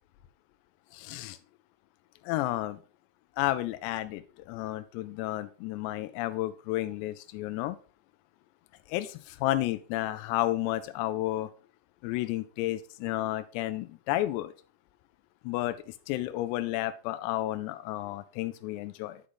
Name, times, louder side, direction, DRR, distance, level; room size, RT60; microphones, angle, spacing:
voice 1, 0.9-1.4 2.3-2.8 3.4-4.2 4.5-7.8 8.9-11.5 12.0-14.5 15.5-19.2, left 15 dB, 90° left, 11 dB, 2.4 m, -31 dB
9.8 x 4.9 x 3.8 m, 0.37 s
omnidirectional pair, 5.4 m